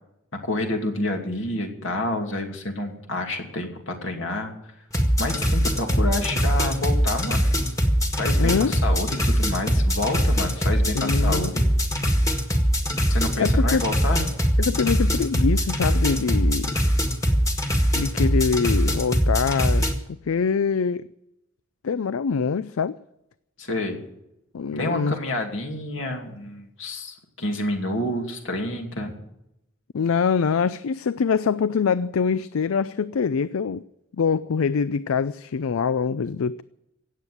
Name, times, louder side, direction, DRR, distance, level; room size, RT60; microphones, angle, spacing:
voice 1, 0.4-4.5 5.2-7.6 8.1-11.6 13.1-14.4 23.6-24.0 24.7-29.1, left 1 dB, 65° left, 2.6 m, -29 dB
sound 1, 4.9-19.9, equal, 15° left, 1.8 m, -22 dB
voice 2, 8.4-8.8 10.9-11.5 13.4-13.8 14.6-16.7 17.9-19.9 20.3-21.1 21.8-23.0 24.5-25.2 29.9-33.8 34.1-36.6, left 5 dB, 85° left, 0.4 m, -24 dB
17.0 x 8.3 x 9.3 m
head